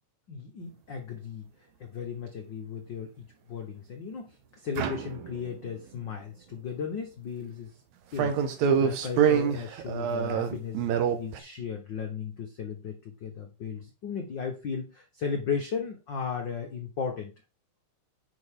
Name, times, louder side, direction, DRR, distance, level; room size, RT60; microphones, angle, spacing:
voice 1, 0.3-1.5 1.8-7.7 8.1-8.4 8.8-10.8 11.2-17.3, left 6 dB, 85° left, 3 dB, 1.0 m, -35 dB
sound 1, 4.8-5.7 8.2-11.4, right 7 dB, 70° right, 2.1 m, -26 dB
9.4 x 5.2 x 3.7 m, 0.31 s
omnidirectional pair, 3.8 m